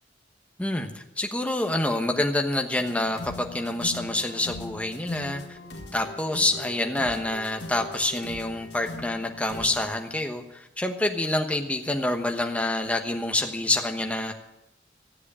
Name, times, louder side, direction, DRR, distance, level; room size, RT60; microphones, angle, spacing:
voice 1, 0.6-5.6 5.9-14.3, left 2 dB, 10° left, 4 dB, 1.1 m, -27 dB
sound 1, 2.8-9.9, left 2 dB, 75° left, 1.9 m, -41 dB
15.0 x 8.1 x 8.4 m, 0.86 s
head